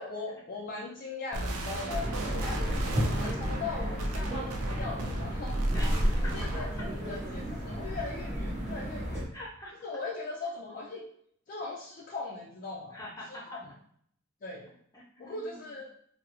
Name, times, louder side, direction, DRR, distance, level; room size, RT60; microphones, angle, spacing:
voice 1, 0.0-2.7 3.1-5.6 6.3-9.3 9.8-11.1 11.5-13.0 13.5-13.6 14.4-14.7 15.2-15.9, left 3 dB, 40° left, -3 dB, 0.3 m, -39 dB
sound 1, 1.3-6.8, right 1 dB, 85° right, 0.5 m, -34 dB
sound 2, 1.9-9.2, equal, 30° right, 0.7 m, -32 dB
voice 2, 5.7-6.3 7.8-7.9 9.3-9.7 12.9-13.4 14.9-15.6, left 1 dB, 15° left, -4 dB, 0.7 m, -45 dB
3.5 x 2.0 x 2.9 m, 0.65 s
head